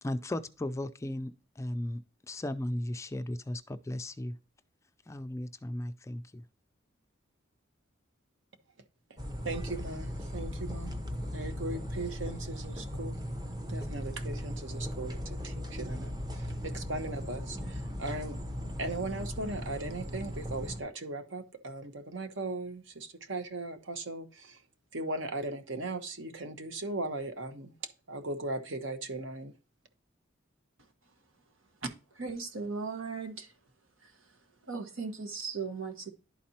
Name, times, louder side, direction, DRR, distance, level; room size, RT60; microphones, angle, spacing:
voice 1, 0.0-2.0 2.3-4.4 5.1-6.4, left 1 dB, 15° left, 0.3 m, -36 dB
sound 1, 9.2-20.8, equal, 20° right, 0.8 m, -38 dB
voice 2, 9.4-10.9 11.3-13.2 13.7-18.4 18.8-24.6 24.9-27.7 28.1-29.5, right 2 dB, 65° right, 1.0 m, -38 dB
voice 3, 32.2-33.5 34.7-36.1, right 4 dB, 85° right, 1.3 m, -37 dB
11.5 x 4.2 x 2.8 m
head